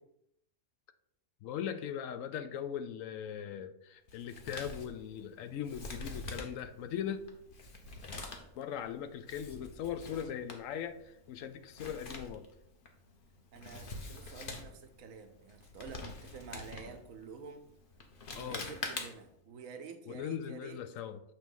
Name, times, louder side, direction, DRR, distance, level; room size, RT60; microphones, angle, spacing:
voice 1, 1.4-7.2 8.6-12.5 18.3-18.7 20.1-21.2, left 9 dB, 80° left, 10 dB, 0.9 m, -39 dB
Male speech man speaking, 4.1-19.4, left 3 dB, 45° left, 0.9 m, -46 dB
voice 2, 13.5-17.7 18.3-20.8, right 5 dB, 85° right, 7 dB, 1.2 m, -49 dB
6.7 x 3.1 x 5.3 m, 0.77 s
omnidirectional pair, 1.4 m